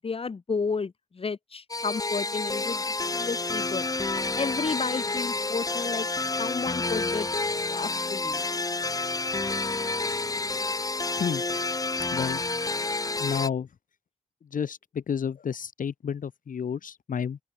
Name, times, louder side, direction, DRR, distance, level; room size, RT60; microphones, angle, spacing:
voice 1, 0.0-3.9 4.4-6.1 6.4-7.3 7.7-8.4, left 4 dB, 45° left, 3.4 m, -32 dB
sound 1, 1.7-13.5, left 3 dB, 25° left, 2.8 m, -29 dB
voice 2, 13.2-13.7 14.5-14.8 15.1-17.4, left 7 dB, 75° left, 1.7 m, -30 dB
open air
wide cardioid pair, 145°, 14 cm